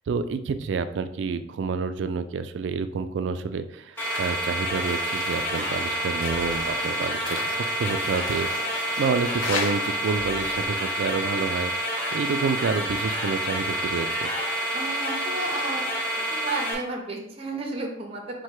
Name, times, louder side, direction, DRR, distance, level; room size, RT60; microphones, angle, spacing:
voice 1, 0.1-11.7 12.1-14.3, right 5 dB, 65° right, 11 dB, 0.3 m, -29 dB
sound 1, 4.0-4.4 4.7-9.7, left 4 dB, 75° left, 0.7 m, -37 dB
sound 2, 4.0-16.7, right 1 dB, 10° left, 0.9 m, -28 dB
sound 3, 4.7-10.7, left 3 dB, 40° left, 0.6 m, -41 dB
voice 2, 14.7-15.8 16.3-18.4, right 2 dB, 30° right, 2 dB, 0.6 m, -32 dB
4.3 x 2.2 x 4.7 m, 0.76 s
head